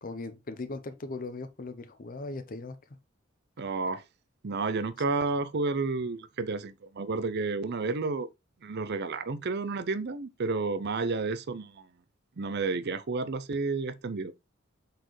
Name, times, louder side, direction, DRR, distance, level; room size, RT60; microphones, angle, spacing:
voice 1, 0.0-2.8, left 3 dB, 40° left, 0.7 m, -38 dB
voice 2, 3.6-4.0 4.4-8.3 8.6-11.9 12.4-14.3, right 3 dB, 55° right, 0.6 m, -31 dB
7.8 x 4.4 x 3.1 m
head